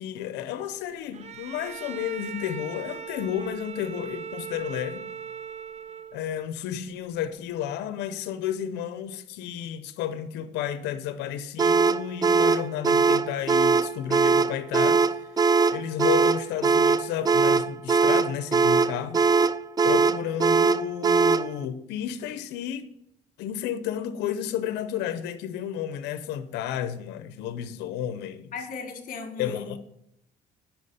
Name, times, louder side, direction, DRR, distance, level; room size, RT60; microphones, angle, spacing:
voice 1, 0.0-5.1 6.1-15.0 15.7-19.2 19.8-22.8 23.4-28.5 29.4-29.8, left 10 dB, 90° left, 0.8 m, -32 dB
Bowed string instrument, 1.1-6.4, right 7 dB, 40° right, 0.7 m, -39 dB
sound 1, 11.6-21.5, right 4 dB, 25° right, 0.3 m, -21 dB
voice 2, 28.5-29.8, left 5 dB, 55° left, 1.9 m, -36 dB
9.6 x 6.0 x 6.6 m
cardioid pair, 110°, 17 cm